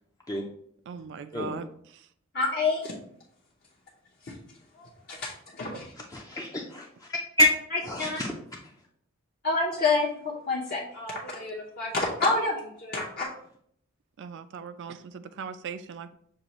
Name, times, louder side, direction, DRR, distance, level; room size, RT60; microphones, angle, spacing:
voice 1, 0.9-2.1 5.7-5.8 14.2-16.1, right 6 dB, 60° right, 12 dB, 0.4 m, -39 dB
voice 2, 2.3-2.9 4.2-4.4 4.8-5.9 7.7-8.2 9.4-13.3, left 3 dB, 45° left, -5 dB, 0.7 m, -29 dB
voice 3, 6.1-7.5 7.8-8.3, left 1 dB, 15° left, -1 dB, 0.4 m, -27 dB
6.6 x 2.4 x 3.0 m, 0.65 s
head